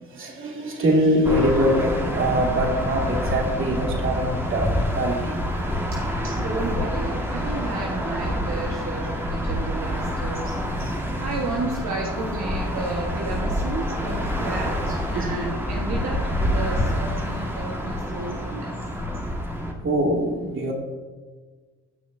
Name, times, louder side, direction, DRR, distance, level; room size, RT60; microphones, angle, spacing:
voice 1, 0.1-5.4 6.2-6.3 15.1-15.3 19.8-20.7, equal, 45° right, -1 dB, 2.3 m, -23 dB
sound 1, 1.2-19.7, equal, 10° right, 1.6 m, -27 dB
voice 2, 6.4-10.6 11.2-18.7, right 3 dB, 70° right, -2 dB, 1.4 m, -32 dB
16.5 x 6.5 x 2.7 m, 1.4 s
cardioid pair, 90°, 30 cm